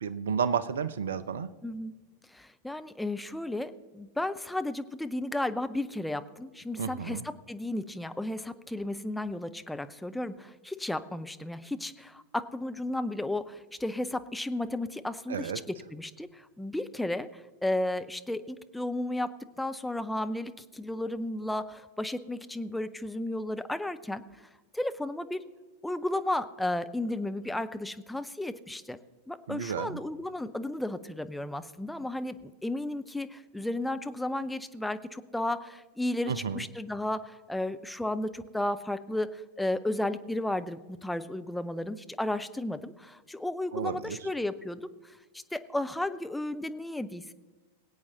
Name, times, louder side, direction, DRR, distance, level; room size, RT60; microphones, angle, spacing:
voice 1, 0.0-1.5 6.8-7.2 15.3-15.6 29.5-30.0 36.3-36.6 43.7-44.2, right 7 dB, 65° right, 15 dB, 0.7 m, -32 dB
voice 2, 1.6-1.9 2.3-24.2 24.7-25.4 25.8-29.0 29.3-47.3, left 1 dB, 5° left, 9 dB, 0.7 m, -33 dB
21.5 x 8.7 x 4.0 m, 1.3 s
figure-of-eight pair, 90°, 0 cm